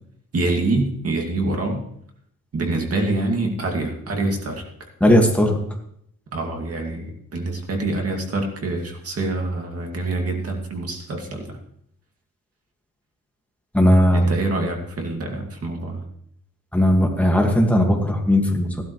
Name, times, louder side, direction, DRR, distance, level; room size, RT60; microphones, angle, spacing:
voice 1, 0.3-1.8 2.5-4.6 6.3-11.6 14.1-16.0, right 2 dB, 50° right, 2 dB, 2.4 m, -25 dB
voice 2, 5.0-5.6 13.7-14.3 16.7-18.8, equal, 5° left, 0 dB, 2.0 m, -17 dB
15.0 x 12.5 x 3.3 m, 0.70 s
wide cardioid pair, 155°, 31 cm